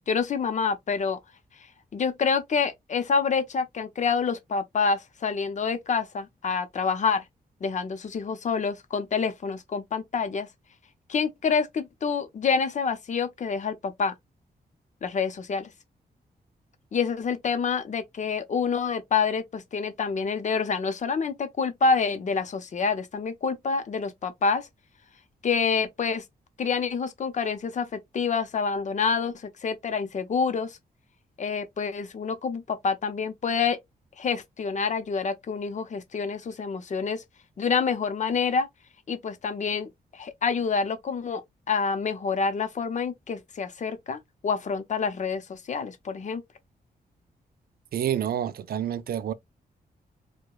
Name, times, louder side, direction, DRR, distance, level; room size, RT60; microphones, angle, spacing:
voice 1, 0.1-1.2 1.9-7.2 7.6-10.5 11.1-14.1 15.0-15.7 16.9-24.7 25.4-26.2 26.6-30.8 31.4-33.8 34.2-37.2 37.6-38.7 39.1-46.4, left 5 dB, 50° left, 0.6 m, -27 dB
voice 2, 47.9-49.3, right 10 dB, 70° right, 0.4 m, -28 dB
4.6 x 2.1 x 2.3 m
wide cardioid pair, 125°, 16 cm